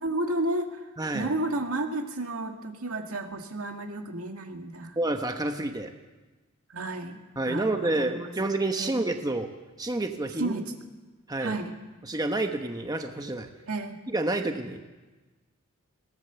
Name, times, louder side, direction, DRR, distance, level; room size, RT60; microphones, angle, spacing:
voice 1, 0.0-5.0 6.7-7.2 7.4-8.3 8.8-8.9 10.4-10.8 11.4-11.8 13.7-14.0, right 2 dB, 70° right, 4 dB, 2.1 m, -32 dB
voice 2, 1.0-1.3 5.0-5.9 7.4-9.5 9.8-10.6 11.3-11.6 12.1-13.5 14.1-14.8, right 2 dB, 20° right, 5 dB, 1.0 m, -29 dB
21.5 x 17.5 x 7.0 m, 1.2 s
head